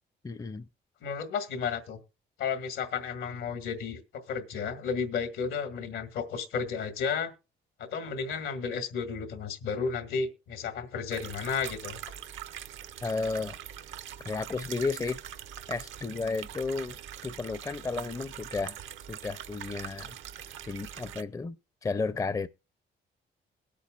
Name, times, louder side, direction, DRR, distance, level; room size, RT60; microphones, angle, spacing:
voice 1, 0.2-0.7 13.0-13.6 14.2-15.2 15.7-17.0 17.2-18.8 19.1-20.2 20.6-21.6 21.8-22.5, left 4 dB, 15° left, 0.5 m, -33 dB
voice 2, 1.0-2.0 2.4-7.3 7.8-12.0, left 6 dB, 85° left, 1.9 m, -33 dB
sound 1, 11.1-21.2, right 10 dB, 75° right, 0.7 m, -43 dB
21.5 x 8.4 x 2.4 m
cardioid pair, 90°, 20 cm